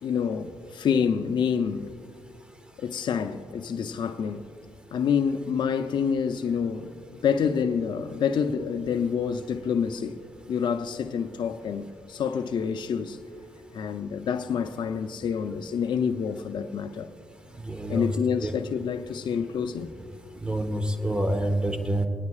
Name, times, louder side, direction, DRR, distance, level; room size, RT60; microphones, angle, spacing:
voice 1, 0.0-1.9 2.8-4.5 4.9-6.9 7.2-10.2 10.5-13.2 13.7-17.1 17.9-19.9, left 7 dB, 60° left, 0.5 m, -27 dB
voice 2, 17.5-18.1 18.4-18.5 20.3-22.1, right 1 dB, 10° right, 1.2 m, -27 dB
25.5 x 9.4 x 2.4 m
supercardioid pair, 55°, 9 cm